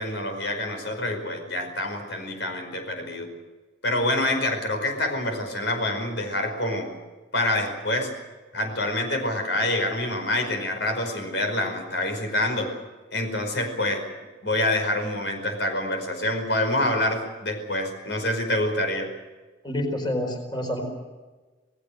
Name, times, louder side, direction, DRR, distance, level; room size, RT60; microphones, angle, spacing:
voice 1, 0.0-3.3 3.8-6.9 7.3-8.1 8.5-12.7 13.1-14.0 14.4-19.1, left 1 dB, 70° left, 5 dB, 5.1 m, -26 dB
voice 2, 19.6-20.8, left 1 dB, 25° left, 3 dB, 4.5 m, -28 dB
28.5 x 19.0 x 6.5 m, 1.3 s
head